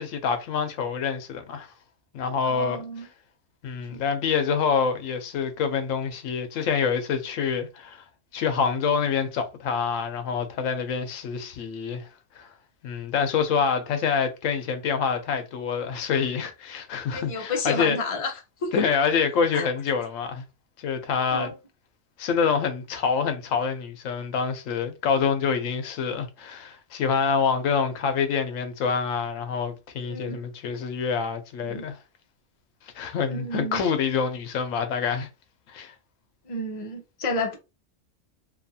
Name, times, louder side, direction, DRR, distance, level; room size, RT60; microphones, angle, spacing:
voice 1, 0.0-1.7 2.1-2.8 3.6-8.0 8.3-12.1 12.4-12.5 12.8-18.0 18.7-20.4 20.8-21.5 22.2-32.0 32.9-35.3 35.7-35.9, left 6 dB, 90° left, 1.0 m, -26 dB
voice 2, 2.4-3.1 3.9-4.0 10.5-10.7 17.1-18.3 18.6-18.7 19.5-19.7 21.3-21.6 30.0-30.4 31.6-31.8 33.3-33.8 36.5-37.6, left 2 dB, 35° left, 0.6 m, -31 dB
2.8 x 2.4 x 2.7 m
omnidirectional pair, 1.3 m